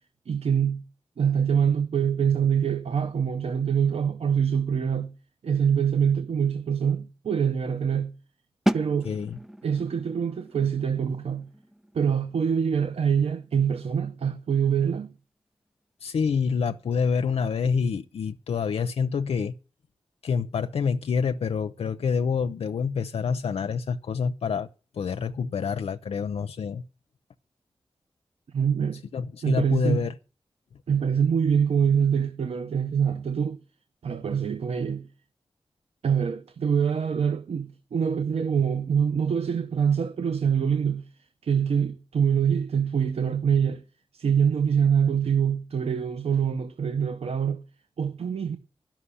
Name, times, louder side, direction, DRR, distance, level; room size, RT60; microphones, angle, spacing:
voice 1, 0.3-0.8 1.2-5.1 5.4-8.1 8.7-9.1 9.6-11.5 11.9-15.1 28.5-29.0 29.4-30.1 30.9-33.6 34.0-35.1 36.0-41.1 41.4-43.8 44.1-47.6 48.0-48.6, right 7 dB, 85° right, 0.7 m, -24 dB
sound 1, 8.7-14.4, equal, 5° right, 0.5 m, -34 dB
voice 2, 9.0-9.4 16.0-19.5 20.2-24.7 24.9-26.8 29.1-30.1, left 6 dB, 85° left, 0.5 m, -27 dB
11.0 x 5.9 x 8.2 m
cardioid pair, 50°, 10 cm